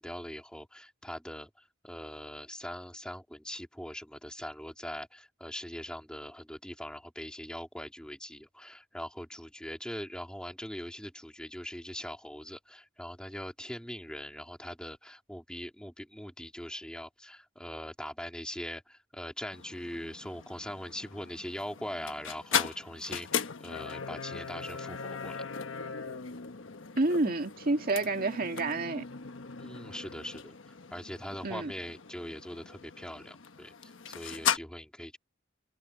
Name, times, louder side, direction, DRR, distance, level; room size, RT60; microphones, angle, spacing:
voice 1, 0.0-25.4 29.6-35.2, equal, 5° left, 3.4 m, -42 dB
sound 1, 19.5-34.6, left 7 dB, 80° left, 1.2 m, -38 dB
voice 2, 27.0-29.0 31.4-31.7, right 2 dB, 50° right, 1.8 m, -29 dB
open air
head